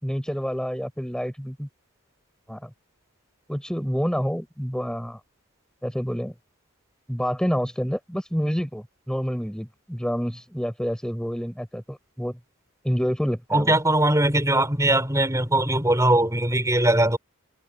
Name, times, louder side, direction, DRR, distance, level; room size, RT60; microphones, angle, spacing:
voice 1, 0.0-1.7 2.5-2.7 3.5-5.2 5.8-6.3 7.1-12.4 12.8-13.7, equal, 5° left, 4.6 m, -28 dB
voice 2, 13.5-17.2, right 1 dB, 15° right, 5.1 m, -20 dB
head